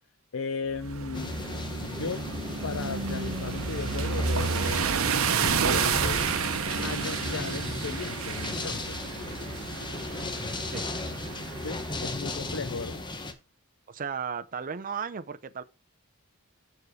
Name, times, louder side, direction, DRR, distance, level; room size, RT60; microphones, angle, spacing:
voice 1, 0.3-1.3 1.8-2.2 2.6-4.9 5.4-6.2 6.8-9.0 11.5-13.0, left 5 dB, 70° left, 0.5 m, -36 dB
sound 1, 0.7-12.9, right 5 dB, 75° right, 0.9 m, -31 dB
sound 2, 1.1-13.3, left 2 dB, 20° left, 1.0 m, -36 dB
voice 2, 13.9-15.6, right 6 dB, 40° right, 0.6 m, -35 dB
7.2 x 6.4 x 4.7 m
head